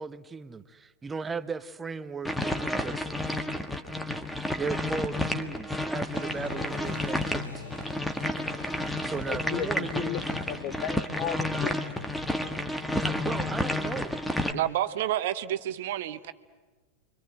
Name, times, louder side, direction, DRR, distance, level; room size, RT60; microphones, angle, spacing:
voice 1, 0.0-3.3 4.6-7.7 9.0-10.2 13.0-14.1, right 5 dB, 15° right, 13 dB, 1.0 m, -36 dB
sound 1, 2.2-14.5, left 1 dB, 5° left, 1.6 m, -31 dB
Applause, 6.1-14.5, left 3 dB, 80° left, 5.3 m, -47 dB
voice 2, 9.3-10.2 10.5-11.8, left 10 dB, 45° left, 12 dB, 1.2 m, -34 dB
voice 3, 14.5-16.3, right 12 dB, 55° right, 12 dB, 1.0 m, -29 dB
30.0 x 24.5 x 7.8 m, 1.3 s
figure-of-eight pair, 90°, 0 cm